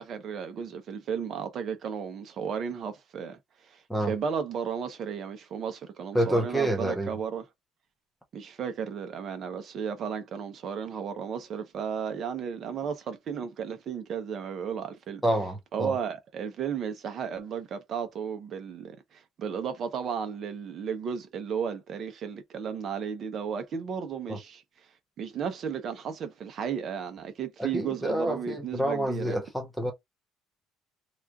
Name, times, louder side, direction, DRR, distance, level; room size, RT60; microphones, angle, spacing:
voice 1, 0.0-7.4 8.3-15.2 15.7-24.6 25.2-29.4, right 7 dB, 40° right, 0.8 m, -34 dB
voice 2, 6.1-7.2 15.2-16.0 24.3-24.4 27.6-29.9, right 1 dB, ahead, 0.7 m, -28 dB
3.0 x 2.3 x 3.8 m
cardioid pair, 165°, 0 cm